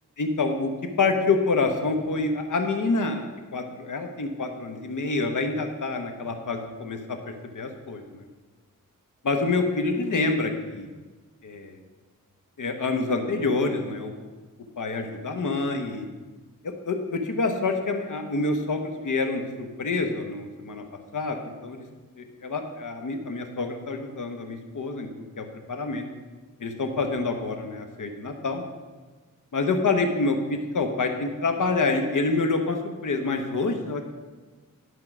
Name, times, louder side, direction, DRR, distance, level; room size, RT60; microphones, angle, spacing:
voice 1, 0.2-0.7 1.0-7.2 7.5-8.3 9.2-10.9 11.4-11.8 12.6-14.1 14.8-16.1 16.6-20.8 21.1-21.8 22.1-25.1 25.4-26.0 26.6-28.6 29.5-34.0, left 3 dB, 65° left, 5 dB, 1.1 m, -27 dB
11.5 x 4.7 x 6.0 m, 1.3 s
wide cardioid pair, 100°, 34 cm